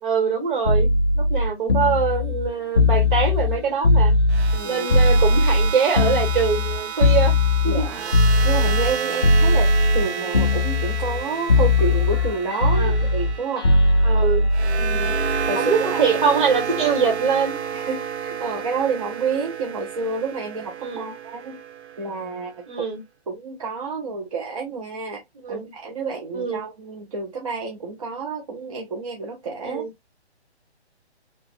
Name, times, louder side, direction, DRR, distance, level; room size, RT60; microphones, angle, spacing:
voice 1, 0.0-0.9 1.2-4.1 4.6-7.3 7.6-7.9 12.7-13.1 14.0-14.4 15.6-17.6 20.8-21.1 22.7-23.0 25.4-25.7 26.3-26.6 29.6-29.9, right 6 dB, 50° right, 1.9 m, -23 dB
sound 1, 0.7-4.6 4.9-8.9 9.2-10.1 10.3-11.2 11.5-15.5 16.7-16.9, left 2 dB, 25° left, 0.3 m, -19 dB
sound 2, 4.3-22.5, right 7 dB, 75° right, 0.5 m, -31 dB
voice 2, 4.5-4.9 7.6-8.1 8.4-9.7 9.9-13.7 14.8-15.2 15.5-16.2 17.7-21.6 22.0-22.6 23.3-25.2 25.5-29.8, right 4 dB, 30° right, 0.6 m, -29 dB
3.0 x 2.6 x 3.2 m
figure-of-eight pair, 140°, 33 cm